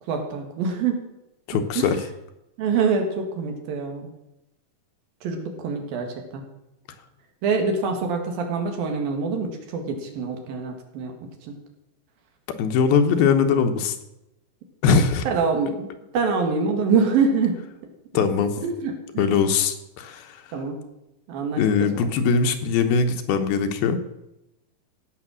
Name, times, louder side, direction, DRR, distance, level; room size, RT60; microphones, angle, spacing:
voice 1, 0.1-1.0 1.5-1.9 2.6-4.1 5.2-6.4 7.4-11.6 15.2-15.9 16.1-17.6 18.6-19.4 20.5-20.8 21.3-21.6 21.9-22.1, right 5 dB, 70° right, 4 dB, 3.4 m, -25 dB
voice 2, 1.5-2.0 12.6-13.9 14.8-15.3 18.1-18.5 19.2-20.4 21.6-24.0, left 6 dB, 80° left, 7 dB, 2.9 m, -21 dB
16.0 x 6.9 x 6.2 m, 0.92 s
omnidirectional pair, 4.3 m